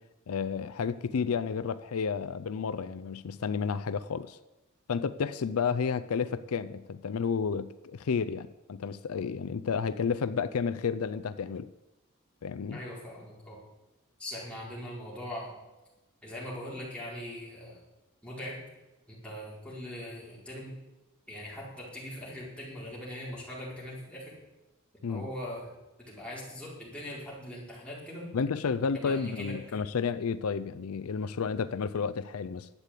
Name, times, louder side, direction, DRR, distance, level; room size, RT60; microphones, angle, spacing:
voice 1, 0.3-4.4 4.9-11.7 12.4-12.8 25.0-25.3 28.3-32.7, left 6 dB, 75° left, 13 dB, 0.5 m, -31 dB
voice 2, 12.7-13.6 14.2-15.5 16.2-17.8 18.2-18.6 19.1-20.7 21.3-24.3 25.1-25.7 26.1-28.3 28.9-29.8, left 1 dB, 5° left, -6 dB, 4.7 m, -41 dB
11.5 x 8.3 x 8.3 m, 1.1 s
head